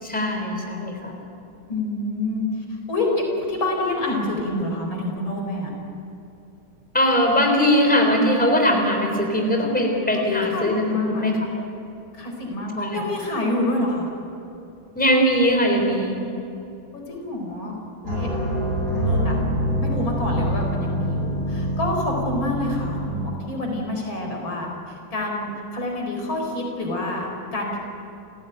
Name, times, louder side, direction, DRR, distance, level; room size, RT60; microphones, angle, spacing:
voice 1, 0.0-1.2 6.9-10.9 11.1-11.3 12.8-13.0 15.0-16.2, equal, 5° left, 2 dB, 3.6 m, -20 dB
voice 2, 1.7-5.7 10.2-11.3 12.1-14.1 16.9-17.8 18.0-18.3 19.0-19.3 19.8-27.8, left 2 dB, 80° left, 0 dB, 5.2 m, -27 dB
sound 1, 18.0-23.1, equal, 40° right, 8.1 m, -25 dB
29.0 x 15.5 x 9.1 m, 2.8 s
omnidirectional pair, 2.1 m